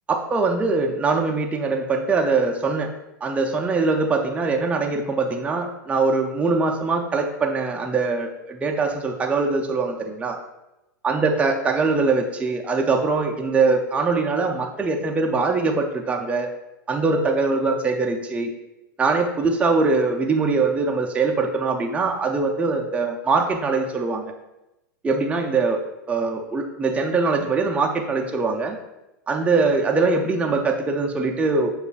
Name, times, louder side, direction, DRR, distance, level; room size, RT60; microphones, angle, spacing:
voice 1, 0.1-2.9 3.2-10.4 11.0-16.5 16.9-18.5 19.0-24.3 25.0-25.8 26.1-28.8 29.3-31.7, right 4 dB, 10° right, 2 dB, 0.4 m, -22 dB
6.4 x 2.3 x 2.4 m, 0.95 s
hypercardioid pair, 115°, 11 cm